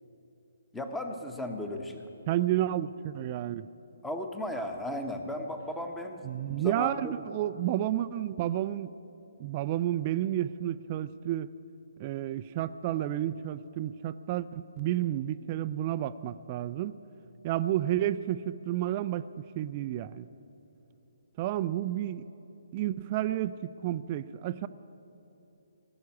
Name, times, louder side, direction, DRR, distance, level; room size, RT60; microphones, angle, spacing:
voice 1, 0.7-2.0 4.0-7.1, left 1 dB, 5° left, 5 dB, 1.0 m, -36 dB
voice 2, 2.3-3.7 6.2-8.9 9.4-11.5 12.0-17.0 17.4-19.3 19.6-20.3 21.4-22.2 22.7-24.7, right 12 dB, 30° right, 13 dB, 0.3 m, -31 dB
17.0 x 7.1 x 9.6 m, 2.9 s
figure-of-eight pair, 135°, 0 cm